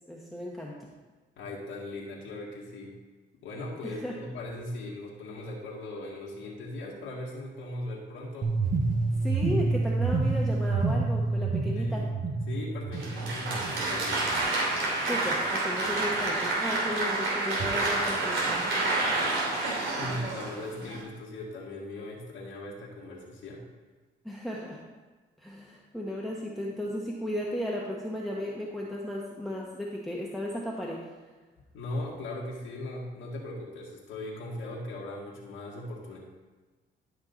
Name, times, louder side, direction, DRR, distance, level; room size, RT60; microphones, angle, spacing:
voice 1, 0.1-0.8 3.8-4.1 9.2-12.1 15.1-19.1 24.2-24.8 25.4-31.1, left 1 dB, ahead, -3 dB, 1.3 m, -35 dB
voice 2, 1.4-3.0 3.4-8.5 11.7-12.1 12.5-14.3 20.0-23.7 31.7-36.2, left 1 dB, 85° left, -4 dB, 1.8 m, -39 dB
sound 1, 8.4-14.4, right 3 dB, 40° right, 1.5 m, -28 dB
Applause, 12.9-21.0, right 2 dB, 80° right, 2.9 m, -29 dB
12.0 x 5.8 x 4.0 m, 1.3 s
cardioid pair, 90°, 20 cm